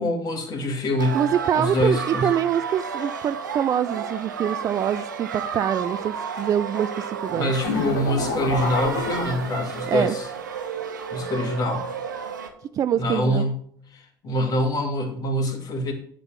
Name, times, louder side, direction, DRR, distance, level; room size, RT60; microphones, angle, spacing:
voice 1, 0.0-1.2 1.6-2.3 7.3-10.3 11.1-11.9 12.9-13.5 13.9-15.9, left 1 dB, 40° left, 4 dB, 2.1 m, -25 dB
sound 1, 1.0-12.5, right 6 dB, 75° right, 1.0 m, -32 dB
voice 2, 1.1-7.5 9.9-10.2 12.7-13.5, right 9 dB, 35° right, 12 dB, 0.4 m, -25 dB
sound 2, 7.6-10.0, left 3 dB, 65° left, 1.9 m, -28 dB
10.5 x 3.8 x 7.3 m, 0.62 s
figure-of-eight pair, 60°, 10 cm